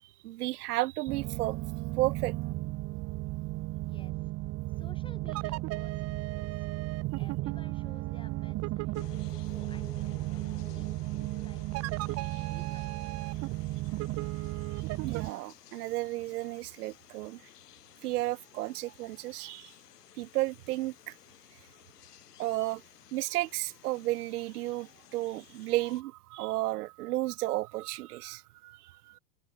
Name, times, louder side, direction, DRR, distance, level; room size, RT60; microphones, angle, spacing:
voice 1, 0.2-1.6 2.0-2.3 15.0-17.4 18.0-19.7 20.2-21.2 22.4-22.8 23.1-29.2, right 17 dB, 75° right, 0.8 m, -33 dB
sound 1, 1.1-15.3, right 19 dB, 35° right, 1.1 m, -34 dB
voice 2, 3.8-4.3 4.8-6.7 7.2-9.0 9.4-11.6 12.0-13.0, left 4 dB, 10° left, 3.6 m, -56 dB
sound 2, 8.9-26.0, left 12 dB, 80° left, 5.5 m, -55 dB
hypercardioid pair, 130°, 46 cm